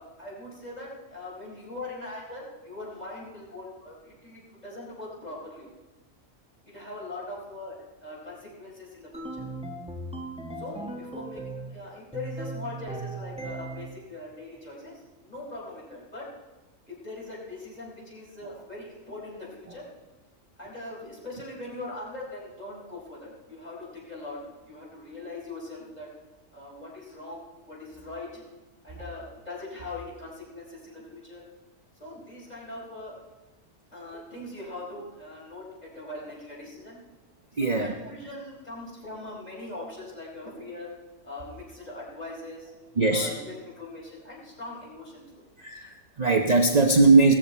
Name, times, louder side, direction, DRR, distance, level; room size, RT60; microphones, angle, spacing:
voice 1, 0.0-5.7 6.6-9.5 10.6-16.3 16.9-19.9 20.6-26.1 26.5-28.4 28.8-31.5 32.0-33.2 33.9-37.0 37.6-40.9 41.2-42.7 43.1-45.4, left 2 dB, 30° left, -5 dB, 4.7 m, -41 dB
sound 1, 9.1-11.8 12.1-14.0, right 2 dB, 5° right, 1.1 m, -37 dB
voice 2, 37.6-37.9 43.0-43.4 45.6-47.3, right 3 dB, 35° right, 3 dB, 0.9 m, -20 dB
17.0 x 14.0 x 4.3 m, 1.1 s
omnidirectional pair, 1.4 m